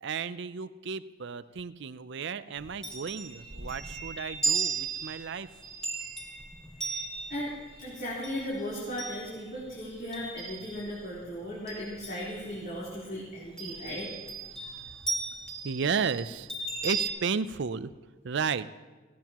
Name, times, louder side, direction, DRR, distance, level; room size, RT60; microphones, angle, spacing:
voice 1, 0.0-5.5 12.6-12.7 13.4-14.0 14.4-15.0 15.6-16.5 16.8-17.9 18.2-18.8, right 5 dB, 60° right, 15 dB, 0.5 m, -34 dB
Chime, 2.6-11.1 11.4-12.8 13.6-17.1, right 4 dB, 5° left, 1.9 m, -36 dB
voice 2, 7.8-14.1, equal, 45° left, -8 dB, 3.8 m, -36 dB
18.0 x 17.0 x 3.0 m, 1.3 s
head